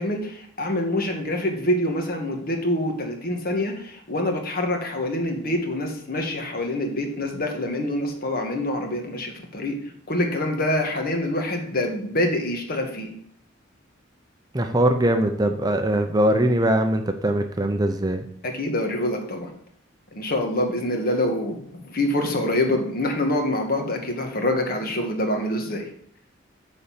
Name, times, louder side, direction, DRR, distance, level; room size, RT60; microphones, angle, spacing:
voice 1, 0.0-9.7 10.1-13.1 18.4-19.5 20.1-25.9, left 1 dB, 45° left, 3 dB, 1.6 m, -26 dB
voice 2, 14.5-18.2, right 1 dB, 20° right, 6 dB, 0.6 m, -21 dB
9.2 x 4.1 x 7.2 m, 0.64 s
head